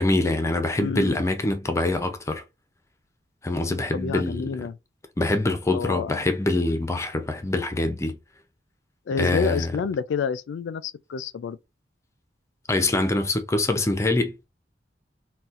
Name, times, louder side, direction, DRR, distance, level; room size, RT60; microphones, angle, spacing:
voice 1, 0.0-2.4 3.4-4.7 5.2-8.2 9.2-9.7 12.7-14.5, left 2 dB, 15° left, 0.4 m, -24 dB
voice 2, 0.7-1.3 3.7-4.8 5.7-6.2 9.1-11.6, left 6 dB, 90° left, 0.3 m, -29 dB
4.0 x 2.2 x 2.4 m
head